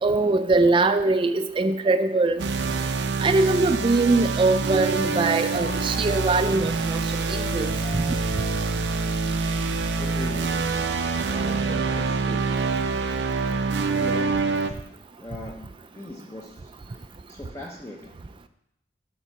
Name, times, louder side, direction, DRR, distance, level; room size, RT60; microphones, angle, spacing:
voice 1, 0.0-2.4 3.2-7.0 7.3-7.7 8.1-8.2, right 3 dB, 30° right, 9 dB, 0.4 m, -22 dB
sound 1, 2.4-14.7, right 4 dB, 85° right, 0.6 m, -26 dB
sound 2, 7.3-11.3, right 1 dB, 65° left, 2.2 m, -43 dB
voice 2, 10.0-10.8 11.3-12.7 13.9-14.8 15.2-18.2, left 1 dB, 15° left, -2 dB, 0.6 m, -40 dB
7.3 x 4.4 x 6.8 m, 0.77 s
head